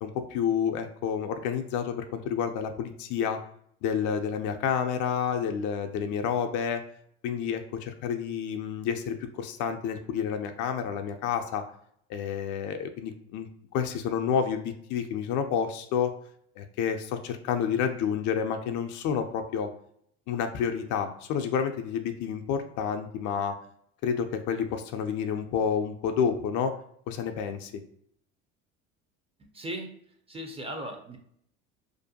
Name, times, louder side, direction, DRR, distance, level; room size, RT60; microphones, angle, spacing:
voice 1, 0.0-3.4 3.8-6.8 7.2-11.6 12.1-13.5 13.7-16.1 16.6-19.7 20.3-23.6 24.0-26.7 27.1-27.7, left 7 dB, 60° left, 6 dB, 0.4 m, -29 dB
voice 2, 29.5-30.0 30.3-31.2, right 1 dB, 15° right, 3 dB, 0.5 m, -37 dB
2.5 x 2.1 x 2.7 m, 0.68 s
hypercardioid pair, 75°, 35 cm